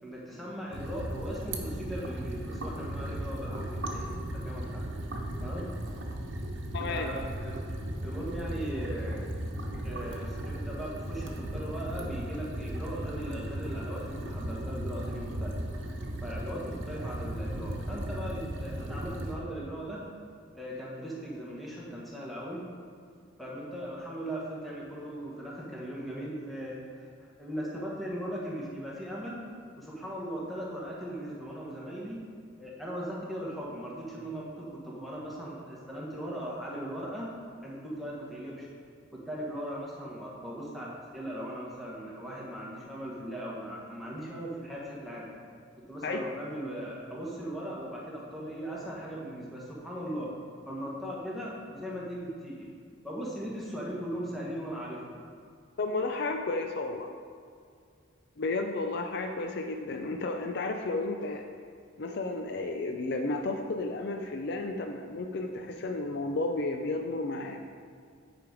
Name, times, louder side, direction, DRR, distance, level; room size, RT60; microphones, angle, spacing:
voice 1, 0.0-4.9 5.4-5.7 6.9-7.7 8.0-9.3 9.8-15.6 16.2-20.0 20.5-22.7 23.4-29.5 29.8-32.2 32.6-37.3 37.6-38.7 39.1-45.3 45.8-50.3 50.6-52.7 53.0-55.2, equal, ahead, -6 dB, 1.4 m, -38 dB
sound 1, 0.7-19.4, right 1 dB, 65° right, 1.0 m, -36 dB
voice 2, 6.7-7.1 46.0-46.2 55.8-57.1 58.4-61.5 62.0-67.6, left 2 dB, 55° left, 4 dB, 0.4 m, -32 dB
9.2 x 5.1 x 4.7 m, 2.2 s
head